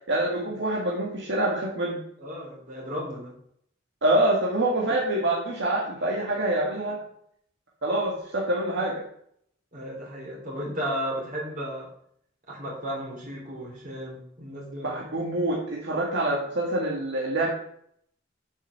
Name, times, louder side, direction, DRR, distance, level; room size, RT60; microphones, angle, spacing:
voice 1, 0.1-2.0 4.0-7.0 7.8-9.0 14.8-17.5, right 1 dB, 65° right, -3 dB, 2.2 m, -26 dB
voice 2, 2.2-3.3 6.3-6.4 9.7-11.9 12.5-15.0, equal, 45° right, -3 dB, 3.7 m, -34 dB
8.4 x 6.1 x 6.8 m, 0.67 s
head